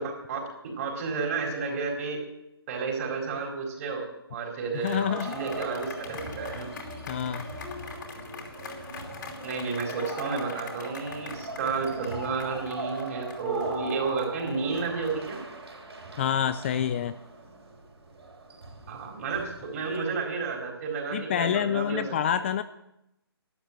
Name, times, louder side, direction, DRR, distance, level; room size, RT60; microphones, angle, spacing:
voice 1, 0.0-2.2 2.7-6.7 9.4-15.4 18.9-22.0, right 4 dB, 35° right, 1 dB, 4.5 m, -31 dB
sound 1, 4.7-16.1, left 5 dB, 50° left, 2.8 m, -44 dB
voice 2, 4.8-5.4 7.1-7.5 16.2-17.2 21.1-22.6, left 9 dB, 30° left, 12 dB, 0.4 m, -27 dB
sound 2, 5.1-20.0, right 2 dB, 80° right, 4.5 m, -40 dB
12.0 x 10.5 x 7.5 m, 0.85 s
hypercardioid pair, 150°, 13 cm